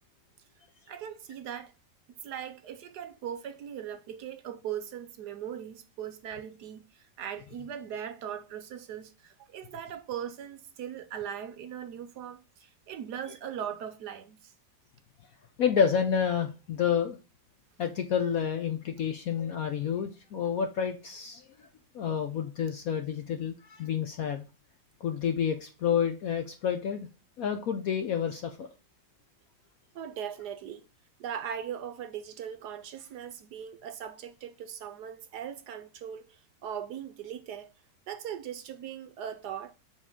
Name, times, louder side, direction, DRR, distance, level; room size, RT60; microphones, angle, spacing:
voice 1, 0.9-1.7 2.2-6.8 7.2-14.5 29.9-30.9 31.2-37.7 38.1-39.7, right 9 dB, 70° right, 1.1 m, -39 dB
voice 2, 15.6-17.2 17.8-21.5 21.9-24.5 25.0-27.1 27.4-28.7, left 7 dB, 70° left, 0.8 m, -29 dB
7.2 x 4.1 x 3.6 m
omnidirectional pair, 2.0 m